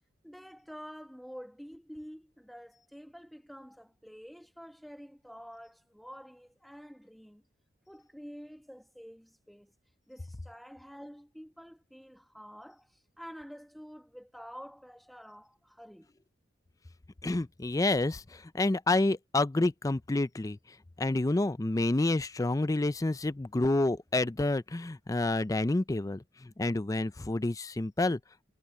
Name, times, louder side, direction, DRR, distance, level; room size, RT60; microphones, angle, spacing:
voice 1, 0.2-7.4 7.9-9.7 10.1-16.1, equal, ahead, 1.7 m, -48 dB
voice 2, 17.2-20.6 21.0-28.2, left 2 dB, 20° left, 0.4 m, -29 dB
head